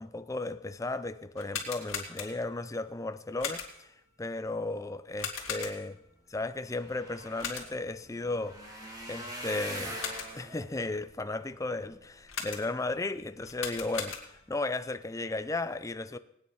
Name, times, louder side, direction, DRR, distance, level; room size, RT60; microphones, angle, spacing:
voice 1, 0.0-5.9 6.3-8.7 9.1-10.0 10.3-16.2, left 2 dB, 15° left, 0.4 m, -35 dB
sound 1, 1.3-2.6 3.4-4.0 5.2-6.1 7.4-7.9 9.8-10.5 12.3-12.9 13.4-14.6, left 6 dB, 70° left, 2.6 m, -39 dB
sound 2, 6.1-6.2 6.4-12.8 13.3-13.8 14.2-14.4 14.7-14.8, equal, 20° right, 2.7 m, -44 dB
19.5 x 9.3 x 5.6 m
head